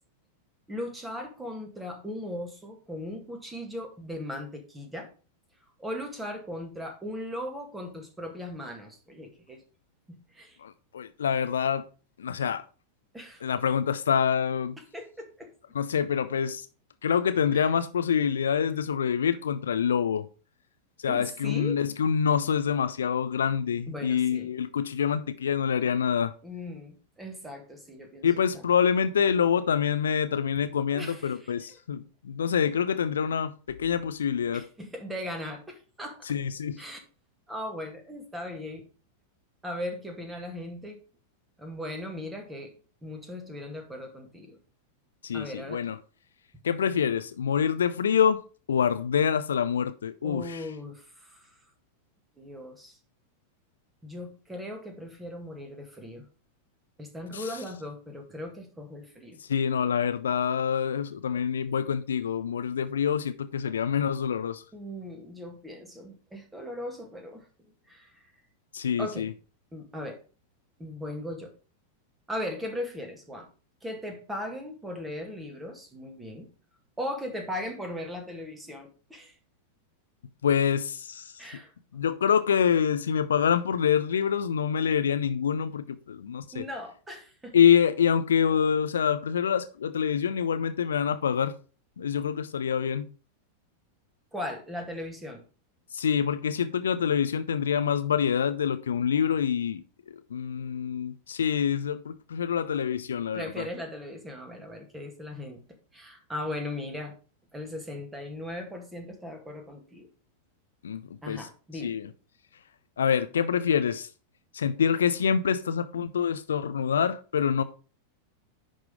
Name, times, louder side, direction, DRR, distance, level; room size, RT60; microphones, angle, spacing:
voice 1, 0.7-5.1 5.8-9.6 10.1-10.6 13.1-13.4 14.9-15.5 17.5-17.6 21.1-21.8 23.9-24.5 26.4-28.3 28.5-28.7 30.9-31.5 34.5-36.2 36.8-37.0 37.5-38.8 39.6-41.0 41.6-42.8 43.0-44.6 45.3-45.9 50.2-51.5 52.4-53.0 54.0-56.2 57.0-59.4 64.7-67.4 67.9-68.1 69.0-69.3 69.7-70.2 70.8-71.5 72.3-73.5 73.8-76.5 77.0-79.3 81.4-81.7 86.5-87.6 94.3-95.4 103.3-107.2 107.5-110.1 111.2-112.0, left 1 dB, 10° right, 2.0 m, -38 dB
voice 2, 10.6-11.9 12.2-12.6 13.4-14.8 15.7-16.7 17.0-20.3 21.0-26.3 28.2-34.7 36.3-36.8 45.2-46.0 46.6-48.4 48.7-50.7 57.3-57.5 59.4-64.6 68.7-69.3 80.4-81.6 81.9-86.7 87.5-91.6 92.0-93.1 95.9-103.7 110.8-111.5 111.8-112.1 113.0-114.1 114.5-117.6, left 7 dB, 65° left, 0.5 m, -26 dB
10.5 x 3.9 x 4.9 m
figure-of-eight pair, 90°, 0 cm